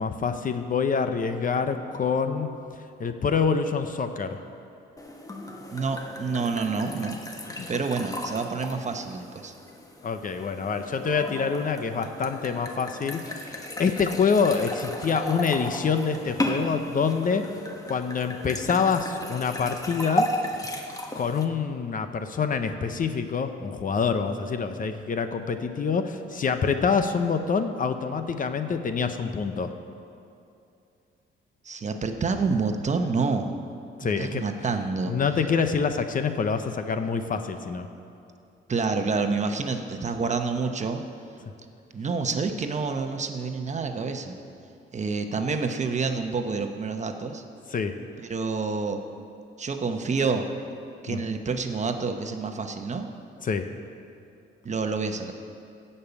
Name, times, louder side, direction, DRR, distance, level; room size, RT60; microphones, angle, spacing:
voice 1, 0.0-2.5 3.0-4.4 7.6-7.7 10.0-17.5 17.9-20.3 21.1-29.7 34.0-34.4 35.1-37.9 47.7-47.9 51.1-51.2 53.4-53.7, left 5 dB, 45° left, 8 dB, 0.8 m, -26 dB
sound 1, 5.0-21.4, left 1 dB, 15° left, 1.3 m, -34 dB
voice 2, 5.7-7.2 7.7-9.5 31.6-33.5 34.0-35.1 38.7-41.0 41.9-44.4 44.9-47.4 48.2-49.0 49.6-50.5 51.0-53.1 54.6-55.3, right 4 dB, 35° right, 6 dB, 1.0 m, -28 dB
15.5 x 5.6 x 8.2 m, 2.6 s
cardioid pair, 90°, 20 cm